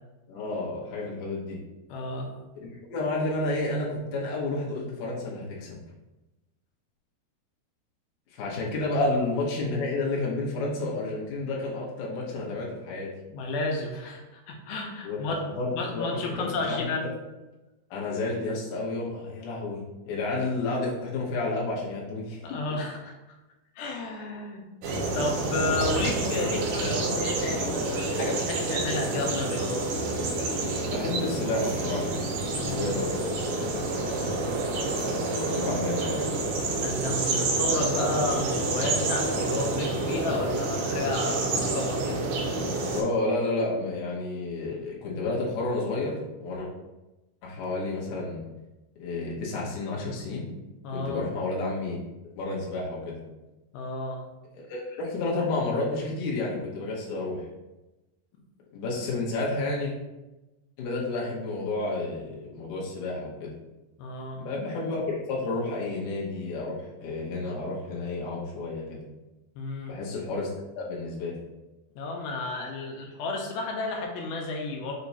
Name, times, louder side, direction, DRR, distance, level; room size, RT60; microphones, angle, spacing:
voice 1, 0.3-1.6 2.6-5.8 8.3-13.1 15.0-16.1 16.4-17.1 17.9-22.4 30.8-32.1 32.6-33.8 35.2-36.3 42.9-46.7 47.4-48.4 49.0-50.5 50.9-52.0 52.4-53.2 54.5-57.5 58.7-59.9 60.8-63.5 64.4-66.7 67.0-69.0 69.9-71.4, left 2 dB, 65° left, -5 dB, 2.1 m, -31 dB
voice 2, 1.9-2.3 13.3-15.5 15.8-17.1 22.4-23.1 23.8-24.7 25.1-29.9 32.5-32.9 36.8-42.2 50.8-51.2 53.7-54.2 64.0-64.4 69.6-69.9 72.0-74.9, left 2 dB, 85° left, 1 dB, 2.5 m, -32 dB
sound 1, 24.8-43.0, right 2 dB, 75° right, 1.8 m, -28 dB
5.9 x 2.2 x 4.0 m, 1.0 s
omnidirectional pair, 4.3 m